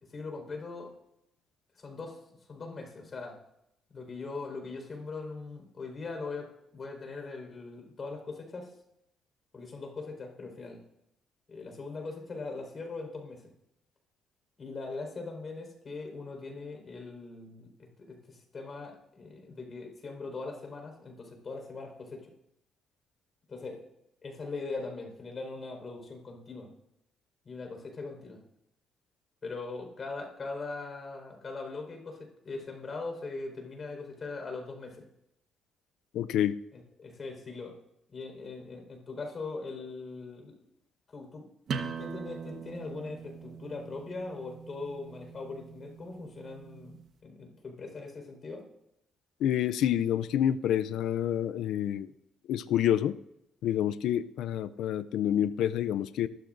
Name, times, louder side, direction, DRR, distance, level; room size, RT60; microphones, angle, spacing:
voice 1, 0.1-0.9 1.8-2.2 2.5-3.4 3.9-8.7 9.5-10.8 11.5-13.5 14.6-22.3 23.5-23.8 24.2-26.7 27.4-28.4 29.4-35.1 36.7-37.8 38.1-40.6 41.1-41.5 42.0-48.7, left 3 dB, 40° left, 3 dB, 4.7 m, -41 dB
voice 2, 36.1-36.6 49.4-52.1 52.5-53.2 53.6-56.3, left 10 dB, 85° left, 13 dB, 0.4 m, -28 dB
sound 1, 41.7-47.1, right 6 dB, 65° right, 1.2 m, -42 dB
24.0 x 13.0 x 2.6 m, 0.80 s
cardioid pair, 90°, 0 cm